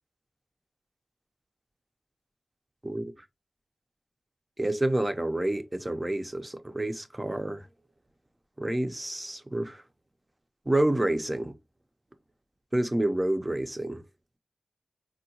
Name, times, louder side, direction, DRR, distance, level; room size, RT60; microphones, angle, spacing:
voice 1, 2.8-3.3 4.6-7.7 8.6-9.8 10.7-11.6 12.7-14.0, right 1 dB, 20° right, 0.5 m, -28 dB
3.6 x 2.2 x 2.8 m
cardioid pair, 40°, 0 cm